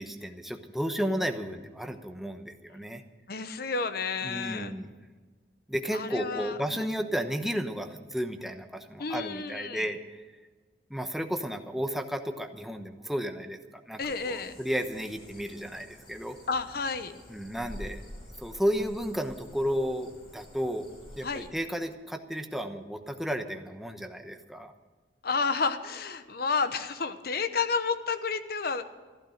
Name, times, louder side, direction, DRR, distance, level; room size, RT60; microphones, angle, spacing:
voice 1, 0.0-3.0 4.2-4.9 5.7-10.2 10.9-13.6 13.9-14.0 14.3-16.4 17.3-18.0 18.4-20.9 21.2-24.7, equal, ahead, 5 dB, 1.0 m, -33 dB
voice 2, 3.3-4.7 5.9-7.0 9.0-9.9 14.0-14.5 16.5-17.1 21.2-21.5 25.2-28.8, left 4 dB, 60° left, 10 dB, 0.9 m, -31 dB
sound 1, 14.0-21.5, left 1 dB, 30° left, 3.4 m, -48 dB
14.5 x 12.5 x 6.5 m, 1.4 s
head